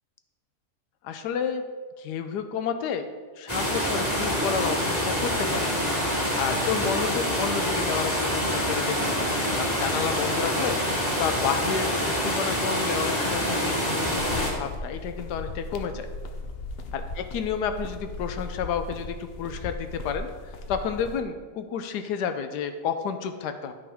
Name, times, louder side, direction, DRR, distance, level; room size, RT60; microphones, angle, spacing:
voice 1, 1.0-1.6 2.0-3.1 3.4-5.7 6.4-16.1 16.9-20.3 20.7-23.7, left 7 dB, 90° left, 8 dB, 1.2 m, -31 dB
sound 1, 3.5-14.5, equal, 10° left, 2.0 m, -26 dB
sound 2, 14.1-21.2, left 2 dB, 65° left, 0.6 m, -37 dB
11.0 x 5.3 x 3.5 m, 1.5 s
omnidirectional pair, 1.7 m